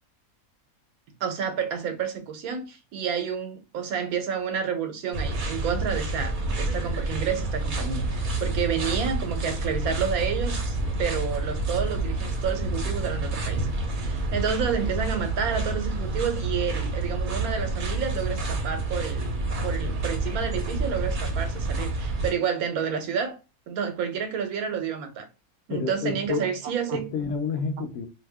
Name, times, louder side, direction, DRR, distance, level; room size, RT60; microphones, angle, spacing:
voice 1, 1.2-13.7 14.0-23.4 23.7-25.3 25.7-27.1, right 7 dB, 85° right, 1.1 m, -30 dB
sound 1, 5.1-22.3, right 2 dB, 45° right, 0.7 m, -28 dB
voice 2, 25.7-26.5 26.9-28.1, left 4 dB, 70° left, 0.8 m, -29 dB
2.7 x 2.2 x 3.3 m
omnidirectional pair, 1.5 m